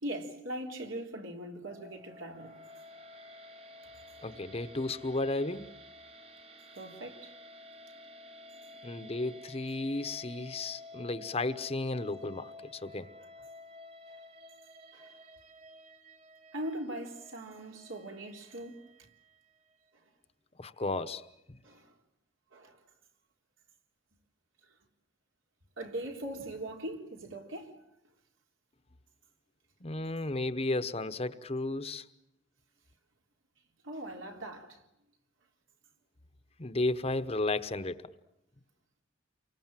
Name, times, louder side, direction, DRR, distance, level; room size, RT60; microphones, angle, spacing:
voice 1, 0.0-2.6 6.8-7.3 14.9-15.1 16.5-18.8 21.6-21.9 22.5-22.8 25.8-27.8 33.8-34.8, right 1 dB, 80° right, 3.6 m, -40 dB
sound 1, 1.6-19.9, left 2 dB, 30° right, 1.2 m, -52 dB
voice 2, 4.2-5.7 8.8-13.1 20.6-21.3 29.8-32.1 36.6-38.1, left 2 dB, 30° left, 1.0 m, -33 dB
29.0 x 24.0 x 7.5 m
head